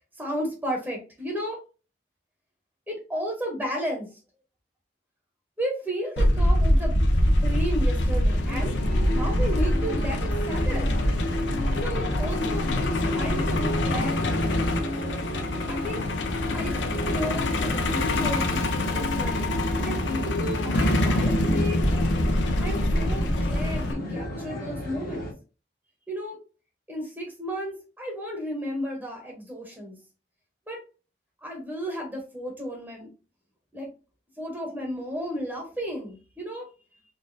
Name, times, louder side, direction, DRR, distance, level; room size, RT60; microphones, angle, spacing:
voice 1, 0.2-1.6 2.9-4.2 5.6-7.1 7.4-8.7 9.1-10.9 11.7-14.9 15.7-16.1 16.5-19.5 19.8-21.8 22.6-25.3 26.1-26.4 26.9-30.0 30.7-30.8 31.4-33.1 33.7-33.9 34.4-36.7, equal, 10° right, 0 dB, 0.8 m, -33 dB
Truck, 6.2-23.9, left 1 dB, 85° left, 0.6 m, -25 dB
sound 1, 8.5-25.3, left 1 dB, 55° left, 1.3 m, -33 dB
3.8 x 2.5 x 2.6 m, 0.33 s
head